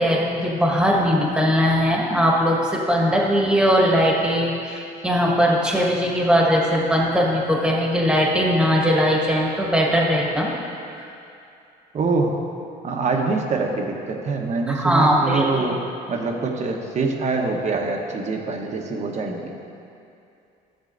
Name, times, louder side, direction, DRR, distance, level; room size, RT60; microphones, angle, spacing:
voice 1, 0.0-10.5 11.0-11.1 14.7-15.7, equal, 5° right, -3 dB, 1.4 m, -20 dB
voice 2, 11.9-12.4 12.8-15.8 16.1-19.5, right 3 dB, 45° right, 2 dB, 1.0 m, -24 dB
14.0 x 7.3 x 2.6 m, 2.6 s
cardioid pair, 110°, 17 cm